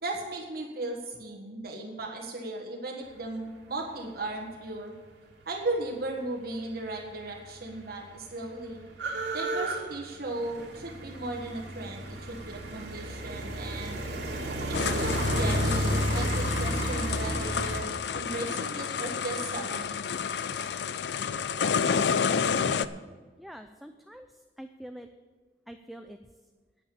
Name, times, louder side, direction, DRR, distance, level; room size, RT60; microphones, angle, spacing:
voice 1, 0.0-4.9 5.4-8.8 9.3-14.0 14.8-20.0, right 2 dB, 60° right, 0 dB, 1.6 m, -36 dB
sound 1, 7.1-7.2 7.4-17.8, right 1 dB, 80° right, 2.3 m, -32 dB
sound 2, 14.7-22.9, left 6 dB, 70° left, 0.4 m, -30 dB
voice 2, 23.4-24.3 24.6-25.1 25.7-26.2, equal, ahead, 6 dB, 0.4 m, -45 dB
9.7 x 9.1 x 7.0 m, 1.4 s
head